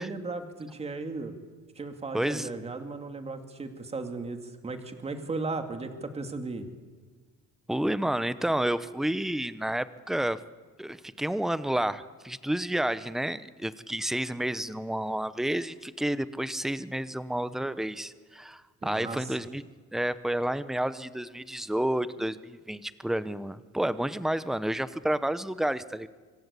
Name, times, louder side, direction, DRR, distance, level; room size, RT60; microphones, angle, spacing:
voice 1, 0.0-1.3 1.8-6.7 18.8-19.4, right 3 dB, 20° right, 6 dB, 2.3 m, -36 dB
voice 2, 2.1-2.5 7.7-10.4 10.8-19.6 19.9-26.1, right 1 dB, ahead, 14 dB, 0.7 m, -30 dB
26.5 x 25.0 x 8.3 m, 1.4 s
cardioid pair, 160°, 31 cm